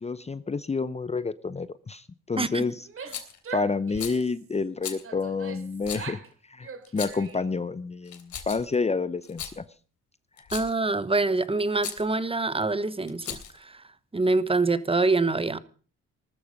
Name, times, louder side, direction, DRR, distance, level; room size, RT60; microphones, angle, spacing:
voice 1, 0.0-2.9 3.5-6.2 6.5-9.6, left 4 dB, 20° left, 0.8 m, -29 dB
Female speech woman speaking / Yell, 2.8-4.4 5.0-6.3 6.6-7.6, right 5 dB, 45° right, 3.0 m, -42 dB
Rattle, 3.1-3.4 3.9-4.2 4.8-5.0 5.8-6.1 6.8-7.3 8.1-8.7 9.2-9.6 10.4-10.8 11.8-12.0 13.1-13.6, left 9 dB, 70° left, 3.5 m, -37 dB
voice 2, 10.5-13.8 14.1-15.6, right 3 dB, 20° right, 1.2 m, -25 dB
19.5 x 13.5 x 5.3 m
cardioid pair, 90°, 30 cm